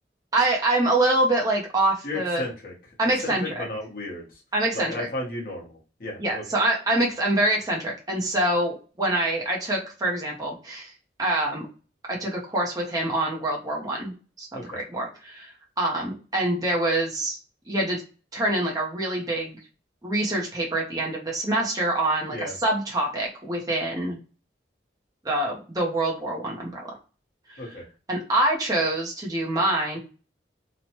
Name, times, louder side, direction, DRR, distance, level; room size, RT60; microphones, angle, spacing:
voice 1, 0.3-2.4 3.0-3.7 4.5-5.1 6.2-10.9 11.2-11.7 12.1-14.5 14.7-15.5 15.8-17.4 17.7-18.0 18.3-19.6 20.0-24.2 25.2-26.8 27.5-27.6 28.1-30.0, right 1 dB, 20° right, -2 dB, 0.6 m, -25 dB
voice 2, 2.0-2.7 3.2-4.4 4.7-6.4 14.5-14.8 22.3-22.5 27.6-27.8, left 1 dB, 50° left, -1 dB, 0.9 m, -34 dB
3.0 x 2.1 x 2.8 m, 0.35 s
head